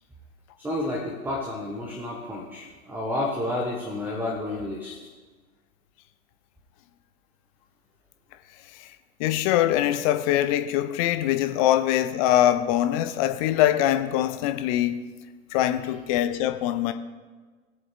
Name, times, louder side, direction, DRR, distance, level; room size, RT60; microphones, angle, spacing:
voice 1, 0.6-5.0 15.7-15.9, left 1 dB, 5° right, 0.9 m, -30 dB
voice 2, 9.2-15.0 15.5-16.9, left 12 dB, 25° left, 0.4 m, -23 dB
20.0 x 7.8 x 2.2 m
figure-of-eight pair, 100°, 42 cm